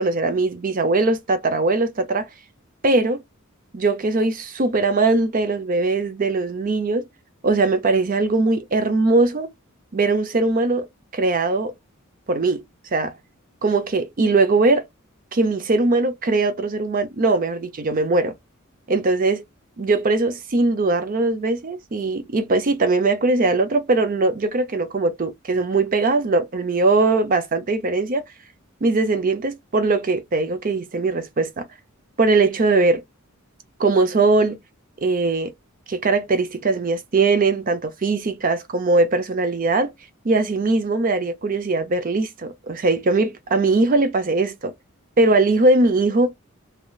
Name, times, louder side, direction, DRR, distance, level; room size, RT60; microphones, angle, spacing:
voice 1, 0.0-2.3 2.8-3.2 3.7-7.0 7.4-9.5 9.9-10.9 11.1-11.7 12.3-12.6 12.9-13.1 13.6-14.9 15.3-18.3 18.9-19.4 19.8-28.2 28.8-31.7 32.2-33.0 33.8-34.6 35.0-35.5 35.9-39.9 40.2-44.7 45.2-46.3, right 3 dB, 40° right, 0.5 m, -20 dB
3.2 x 2.7 x 2.3 m
head